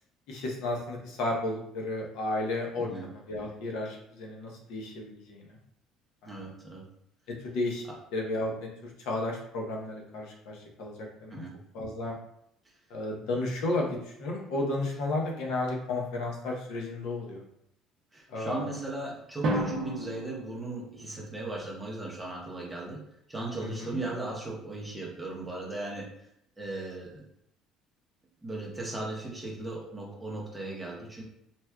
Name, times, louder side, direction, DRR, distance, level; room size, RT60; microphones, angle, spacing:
voice 1, 0.3-5.5 6.2-6.3 7.4-7.8 8.1-8.7 9.1-10.9 11.2-11.4 11.7-12.1 12.9-17.4 18.3-18.7 23.6-24.0, left 2 dB, 70° left, 0 dB, 0.8 m, -33 dB
voice 2, 6.3-6.8 11.3-11.5 18.1-23.0 23.3-26.1 26.6-27.2 28.4-31.2, right 2 dB, 5° right, -4 dB, 0.7 m, -37 dB
Drum, 19.4-21.5, right 1 dB, 45° right, 0.6 m, -33 dB
4.2 x 2.3 x 2.3 m, 0.75 s
cardioid pair, 165°, 0 cm